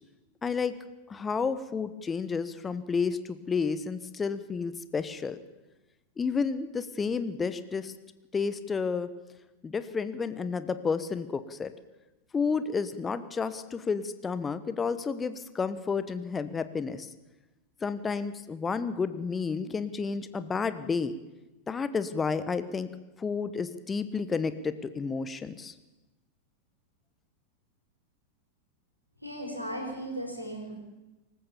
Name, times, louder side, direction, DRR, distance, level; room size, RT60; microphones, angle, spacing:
voice 1, 0.4-0.8 1.1-5.4 6.2-7.9 8.3-9.1 9.6-11.7 12.3-17.1 17.8-21.1 21.7-22.9 23.2-25.7, left 5 dB, 15° left, 13 dB, 1.1 m, -31 dB
voice 2, 29.2-30.8, right 1 dB, 90° right, 1 dB, 5.2 m, -36 dB
25.5 x 14.5 x 7.1 m, 1.1 s
figure-of-eight pair, 90°, 0 cm